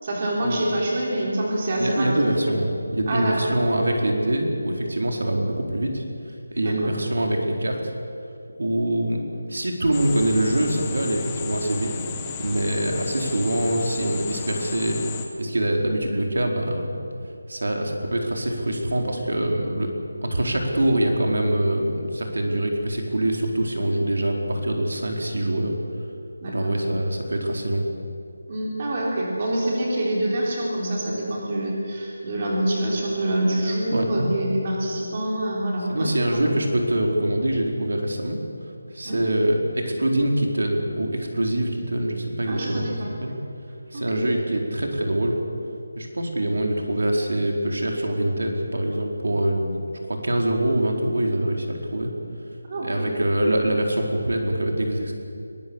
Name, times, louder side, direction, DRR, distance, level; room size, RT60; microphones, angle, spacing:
voice 1, 0.0-2.3 3.1-3.5 6.6-6.7 26.4-26.7 28.5-36.5 39.0-39.2 42.5-43.1 43.9-44.3 52.7-53.1, right 1 dB, 25° right, -3 dB, 3.5 m, -26 dB
voice 2, 1.8-6.0 6.5-7.8 8.6-9.2 9.5-11.9 12.4-15.0 15.4-17.0 17.5-19.9 20.2-25.7 26.5-27.8 33.9-34.3 35.9-38.4 38.9-43.3 43.9-45.4 46.0-49.7 50.0-52.1 52.8-55.1, right 1 dB, 85° right, 1 dB, 4.3 m, -24 dB
sound 1, 9.9-15.3, left 5 dB, 10° left, 1.0 m, -33 dB
22.5 x 20.0 x 7.3 m, 2.5 s
figure-of-eight pair, 180°, 0 cm